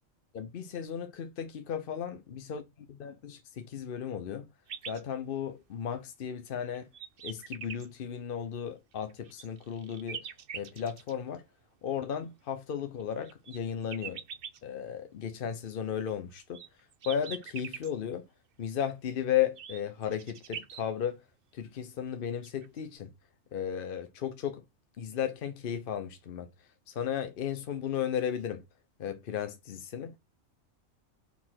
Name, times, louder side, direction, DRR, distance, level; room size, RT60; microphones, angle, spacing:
voice 1, 0.3-2.6 3.0-4.5 4.9-6.9 7.2-10.2 10.5-11.4 11.8-14.2 14.6-16.6 17.0-18.2 18.6-21.2 21.5-23.1 23.5-24.6 25.0-26.5 26.9-28.6 29.0-30.1, left 9 dB, 55° left, 0.7 m, -34 dB
sound 1, 4.7-5.0 5.7-5.8 6.5-7.9 8.9-11.1 12.8-14.6 16.1-17.9 19.4-20.8 22.1-22.2 22.4-22.8, right 7 dB, 50° right, 0.7 m, -43 dB
4.4 x 4.2 x 5.7 m
omnidirectional pair, 1.4 m